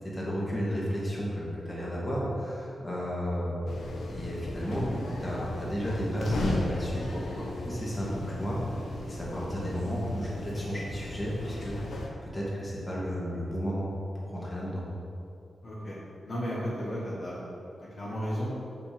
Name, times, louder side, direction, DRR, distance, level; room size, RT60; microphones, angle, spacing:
voice 1, 0.0-8.7 9.0-11.8 12.2-13.9 14.1-14.9, equal, 20° left, -6 dB, 2.0 m, -33 dB
sound 1, 3.7-12.1, left 1 dB, 80° left, 1.1 m, -36 dB
voice 2, 15.6-16.0 16.2-17.5 17.9-18.5, equal, 40° left, -7 dB, 1.5 m, -33 dB
6.8 x 5.1 x 6.9 m, 2.6 s
wide cardioid pair, 135°, 0 cm